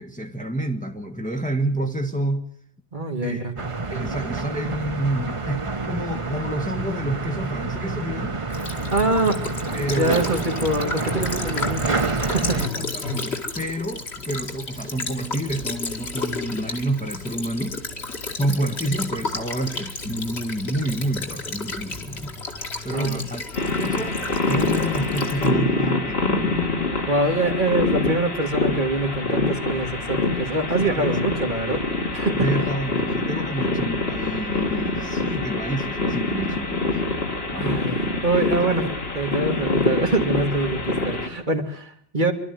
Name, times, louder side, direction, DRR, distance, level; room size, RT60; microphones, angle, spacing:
voice 1, 0.0-2.5 3.2-3.5 3.9-8.4 9.7-10.4 12.5-17.8 18.3-22.3 22.8-23.4 23.8-26.7 30.8-31.2 32.4-37.0 37.5-37.8, right 1 dB, 5° left, 1.4 m, -29 dB
voice 2, 2.9-3.5 8.9-9.4 10.0-12.6 22.9-23.2 27.1-31.8 32.1-32.5 37.5-42.3, right 2 dB, 45° right, 2.2 m, -24 dB
sound 1, 3.6-12.7, right 4 dB, 30° right, 1.0 m, -28 dB
Child speech kid speaking / Bird vocalization bird call bird song / Stream, 8.5-25.5, left 3 dB, 85° left, 2.4 m, -32 dB
sound 2, 23.5-41.3, left 2 dB, 70° left, 2.9 m, -25 dB
25.5 x 12.5 x 9.3 m
omnidirectional pair, 1.1 m